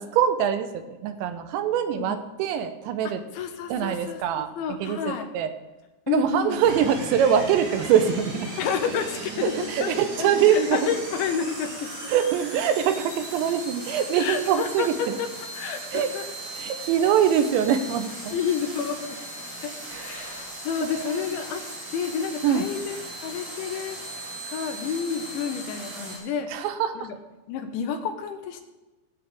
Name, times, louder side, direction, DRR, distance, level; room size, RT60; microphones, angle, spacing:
voice 1, 0.0-3.2 3.7-4.5 4.8-5.5 6.1-8.5 9.4-10.9 12.1-15.2 15.9-16.1 16.6-18.4 19.9-20.5 20.9-21.2 22.4-22.6 26.5-27.1, right 8 dB, 85° right, 8 dB, 3.0 m, -24 dB
voice 2, 3.1-5.3 6.1-6.6 8.6-9.9 10.2-12.1 14.1-15.3 15.6-16.3 18.3-19.2 19.6-21.6 21.9-24.0 24.5-26.5 27.0-27.2 27.5-28.6, left 7 dB, 85° left, 6 dB, 3.5 m, -30 dB
sound 1, 6.6-26.2, right 1 dB, 40° right, 4.5 m, -37 dB
18.5 x 8.0 x 3.5 m, 1.1 s
omnidirectional pair, 5.2 m